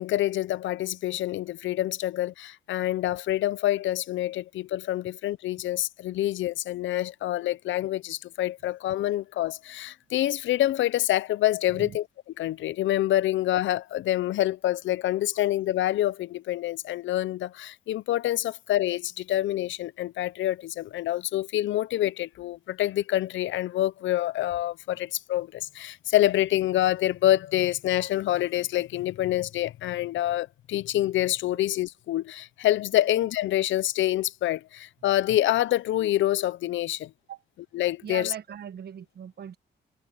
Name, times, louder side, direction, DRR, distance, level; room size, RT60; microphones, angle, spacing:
voice 1, 0.0-12.1 12.4-37.1 37.7-38.3, left 14 dB, 75° left, 0.6 m, -26 dB
voice 2, 11.7-12.0 37.3-37.4 38.0-39.6, right 8 dB, 55° right, 1.2 m, -39 dB
cardioid pair, 90°, 20 cm